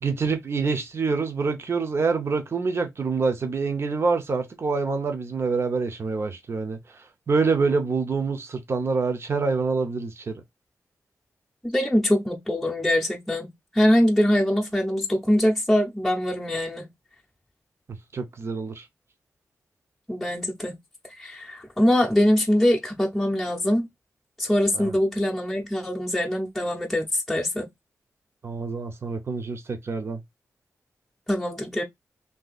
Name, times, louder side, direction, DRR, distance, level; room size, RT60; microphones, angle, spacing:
voice 1, 0.0-7.0 7.3-10.4 17.9-18.8 24.7-24.9 28.4-30.2, right 4 dB, 50° right, 0.7 m, -26 dB
voice 2, 11.6-16.9 20.1-20.8 21.2-23.9 24.4-27.7 31.3-31.8, left 1 dB, 5° left, 0.7 m, -23 dB
2.8 x 2.8 x 3.9 m
wide cardioid pair, 95°, 6 cm